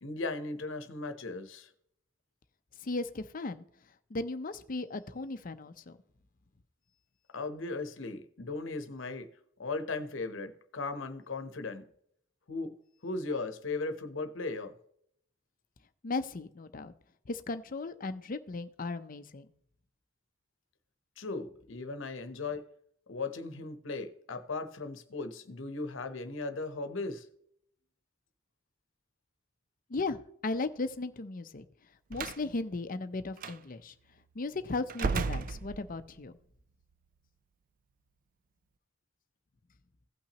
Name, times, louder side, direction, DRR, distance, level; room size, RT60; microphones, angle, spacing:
voice 1, 0.0-1.7 7.3-9.3 9.6-11.8 12.5-12.7 13.0-14.7 21.2-22.6 23.1-27.3, left 3 dB, 70° left, 9 dB, 0.9 m, -37 dB
voice 2, 2.8-3.6 4.1-6.0 16.0-16.9 17.3-19.5 29.9-31.6 32.1-33.9 34.3-36.4, left 3 dB, 45° left, 10 dB, 0.6 m, -36 dB
Slam, 32.1-32.4 33.4-33.6 34.9-36.2, right 5 dB, 45° right, 0.4 m, -33 dB
16.5 x 5.8 x 2.9 m, 0.70 s
head